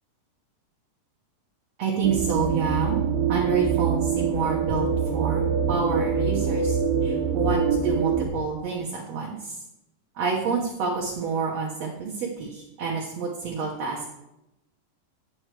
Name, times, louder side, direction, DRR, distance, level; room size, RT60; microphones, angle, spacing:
voice 1, 1.8-3.0 3.3-4.9 5.1-9.6 10.2-14.1, right 5 dB, 60° right, -2 dB, 1.9 m, -28 dB
sound 1, 2.0-8.3, right 6 dB, 80° right, 2.8 m, -25 dB
10.5 x 7.7 x 3.4 m, 0.89 s
omnidirectional pair, 4.0 m